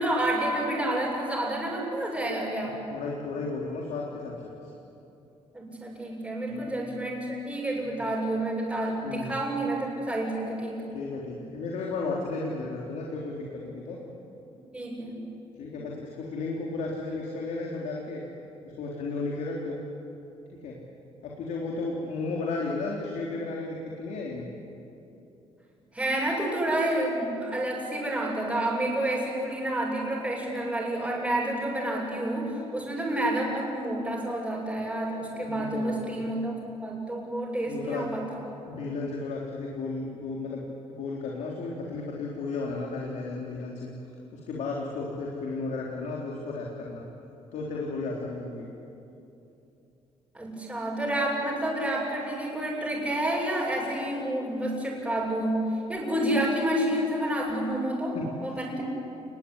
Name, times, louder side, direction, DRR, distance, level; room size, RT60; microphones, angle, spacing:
voice 1, 0.0-2.8 5.5-10.9 14.7-15.3 25.9-36.5 36.8-38.2 50.3-55.6 55.9-58.8, right 1 dB, 10° right, -4 dB, 7.4 m, -29 dB
voice 2, 2.6-4.7 6.5-6.8 7.8-8.0 9.0-9.3 10.9-14.0 15.6-18.2 18.6-19.8 20.6-20.8 21.2-24.5 35.4-36.2 37.7-38.1 38.7-43.9 44.3-47.0 47.5-48.7 58.1-58.2, left 3 dB, 80° left, -2 dB, 3.7 m, -34 dB
29.5 x 20.5 x 9.9 m, 2.9 s
cardioid pair, 130°, 12 cm